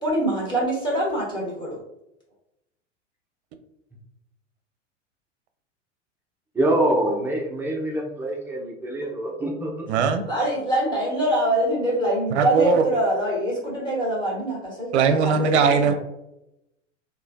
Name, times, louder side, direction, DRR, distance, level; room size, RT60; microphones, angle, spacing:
voice 1, 0.0-1.8 9.0-9.1 10.3-15.5, right 1 dB, 10° left, -4 dB, 1.2 m, -24 dB
voice 2, 6.6-9.9, right 1 dB, 5° right, -2 dB, 0.4 m, -25 dB
voice 3, 9.9-10.3 12.3-12.9 14.9-15.9, right 6 dB, 60° right, 8 dB, 0.5 m, -20 dB
3.0 x 2.2 x 2.5 m, 0.86 s
figure-of-eight pair, 90°, 37 cm